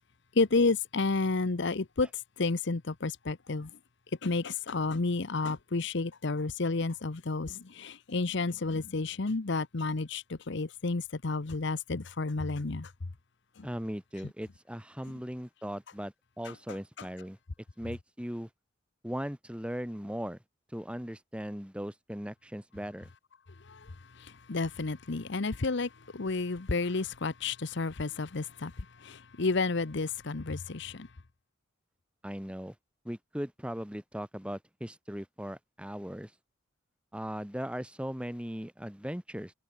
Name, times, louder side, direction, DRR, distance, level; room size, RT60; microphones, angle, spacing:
voice 1, 0.3-2.1 2.4-3.7 4.2-12.9 13.6-13.7 16.4-17.1 23.6-31.1, left 3 dB, 60° left, 0.9 m, -31 dB
voice 2, 13.6-17.4 17.8-18.5 19.0-20.4 20.7-23.1 32.2-32.7 33.0-36.3 37.1-39.5, equal, 5° right, 2.6 m, -38 dB
head